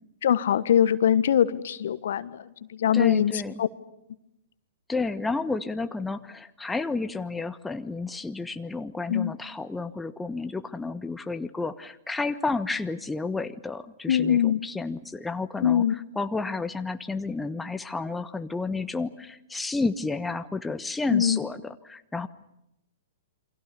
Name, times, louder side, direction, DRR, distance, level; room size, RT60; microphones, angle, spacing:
voice 1, 0.2-3.7 9.1-9.3 14.1-14.6 15.6-15.9 21.1-21.4, left 9 dB, 60° left, 15 dB, 1.4 m, -23 dB
voice 2, 2.9-3.6 4.9-22.3, left 3 dB, 10° left, 9 dB, 1.2 m, -31 dB
29.0 x 24.0 x 6.9 m, 0.84 s
figure-of-eight pair, 110°, 0 cm